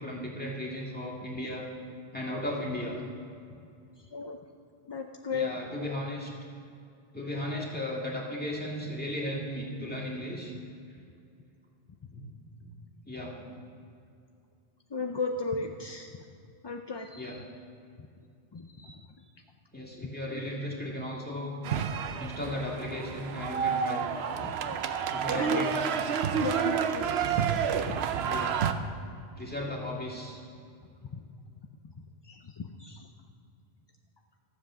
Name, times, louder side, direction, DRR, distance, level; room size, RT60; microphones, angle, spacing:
voice 1, 0.0-1.7 2.1-3.0 5.3-6.3 7.1-10.5 12.1-12.2 12.6-12.7 13.1-13.6 17.2-17.4 19.7-21.5 22.2-24.0 25.1-25.8 28.3-28.6 29.4-30.4, left 1 dB, 10° left, -3 dB, 2.0 m, -36 dB
voice 2, 4.9-5.5 14.9-16.1 16.6-17.4 18.5-19.0 24.4-24.8 25.4-25.7 26.3-27.1 27.8-28.0 32.3-33.0, left 4 dB, 40° left, 3 dB, 0.4 m, -35 dB
sound 1, 21.6-28.7, right 7 dB, 75° right, 0.9 m, -29 dB
14.0 x 7.7 x 6.2 m, 2.5 s
omnidirectional pair, 1.1 m